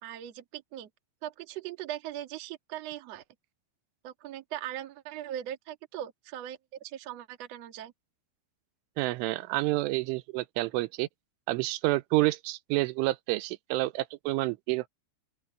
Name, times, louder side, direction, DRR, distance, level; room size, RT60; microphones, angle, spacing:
voice 1, 0.0-0.9 1.2-3.2 4.0-7.9, right 11 dB, 55° right, 2.0 m, -40 dB
voice 2, 9.0-11.1 11.5-14.9, right 20 dB, 90° right, 3.2 m, -29 dB
open air
omnidirectional pair, 5.5 m